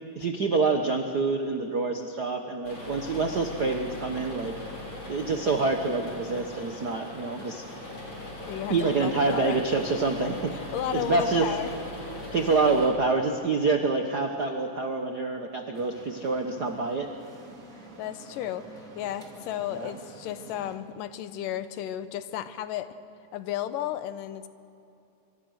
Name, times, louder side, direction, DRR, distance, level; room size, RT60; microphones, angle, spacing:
voice 1, 0.1-4.6 5.1-7.7 8.7-10.5 10.9-11.5 12.3-17.1 19.7-20.0, right 3 dB, 80° right, 5 dB, 0.9 m, -26 dB
sound 1, 2.6-12.9, left 1 dB, 50° left, 6.7 m, -39 dB
voice 2, 8.5-9.6 10.1-11.7 18.0-22.9 23.3-24.5, left 11 dB, 90° left, 12 dB, 2.6 m, -33 dB
sound 2, 15.7-20.8, right 3 dB, 25° right, 2.6 m, -48 dB
25.5 x 24.5 x 6.4 m, 2.7 s
omnidirectional pair, 3.7 m